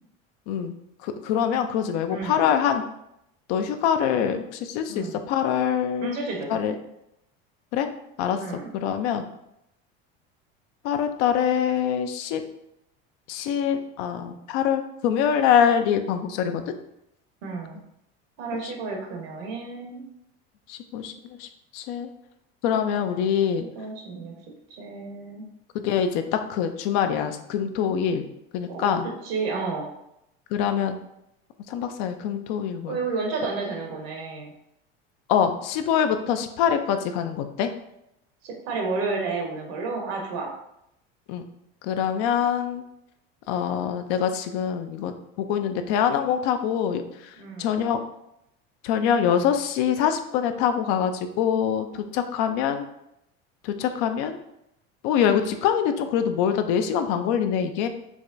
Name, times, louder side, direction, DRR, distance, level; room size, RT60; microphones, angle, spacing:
voice 1, 1.0-2.8 3.5-6.2 6.5-6.7 7.7-7.9 8.2-9.2 10.8-12.4 13.3-16.6 18.5-18.7 20.7-21.1 21.4-21.5 21.7-22.1 22.6-23.6 25.7-28.3 28.5-29.1 30.5-31.0 31.7-33.0 35.3-37.7 41.3-41.4 41.8-42.8 43.5-48.0 48.8-52.9 53.6-54.4 55.0-57.9, left 8 dB, 65° left, 7 dB, 0.5 m, -24 dB
voice 2, 2.1-2.5 4.9-5.2 6.0-6.6 8.4-8.7 17.4-17.8 18.4-20.0 23.7-24.3 24.7-25.4 28.7-29.9 32.9-34.5 38.4-40.5 47.4-47.7, right 4 dB, 75° right, 1 dB, 1.1 m, -31 dB
4.7 x 2.2 x 2.5 m, 0.81 s
supercardioid pair, 95°, 31 cm